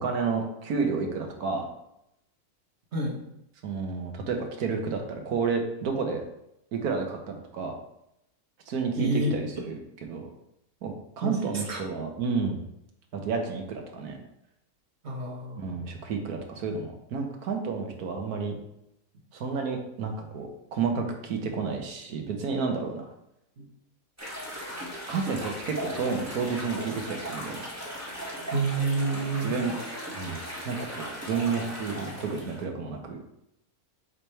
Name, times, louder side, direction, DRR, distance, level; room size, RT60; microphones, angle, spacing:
voice 1, 0.0-1.6 3.6-6.2 6.7-7.8 8.7-9.8 10.1-10.3 10.8-12.6 13.1-14.2 15.6-18.5 19.3-23.1 25.1-27.6 29.4-29.8 30.1-33.2, right 5 dB, 80° right, 3 dB, 1.5 m, -31 dB
voice 2, 8.9-9.4 11.2-11.8 15.0-15.8 23.6-23.7 28.5-29.5, right 2 dB, 50° right, 0 dB, 1.3 m, -29 dB
sound 1, 24.2-32.6, equal, 10° right, 1.2 m, -37 dB
6.5 x 3.3 x 4.4 m, 0.82 s
omnidirectional pair, 1.6 m